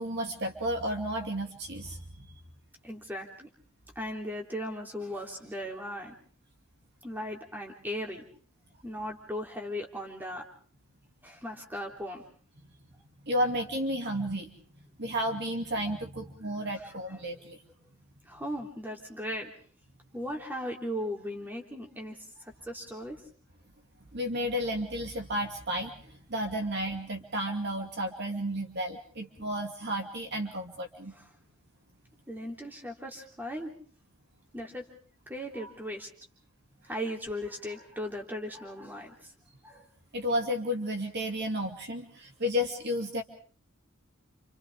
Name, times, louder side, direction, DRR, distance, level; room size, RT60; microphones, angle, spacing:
voice 1, 0.0-2.3 13.2-14.5 15.0-17.6 24.1-31.1 40.1-43.2, equal, 55° right, 3 dB, 2.7 m, -32 dB
voice 2, 2.8-3.5 4.0-6.1 7.0-8.3 8.8-10.4 11.2-12.2 16.8-16.9 18.3-19.5 20.1-23.2 31.1-31.3 32.3-33.7 34.5-34.9 35.3-36.1 36.9-39.3 39.6-39.9, equal, 10° right, 0 dB, 3.5 m, -37 dB
29.5 x 28.0 x 3.7 m, 0.44 s
head